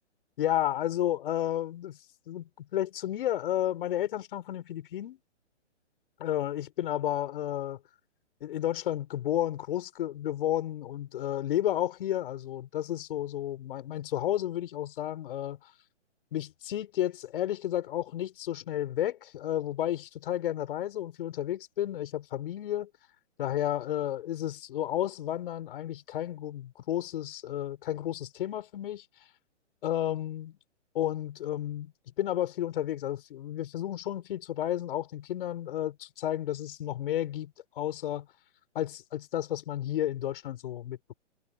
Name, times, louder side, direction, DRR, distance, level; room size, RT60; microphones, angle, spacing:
voice 1, 0.4-2.0 2.3-5.2 6.2-7.8 8.4-15.6 16.3-22.9 23.4-29.0 29.8-30.6 30.9-31.9 32.2-38.3 38.7-41.1, left 12 dB, 50° left, 6.7 m, -32 dB
hypercardioid pair, 140°, 36 cm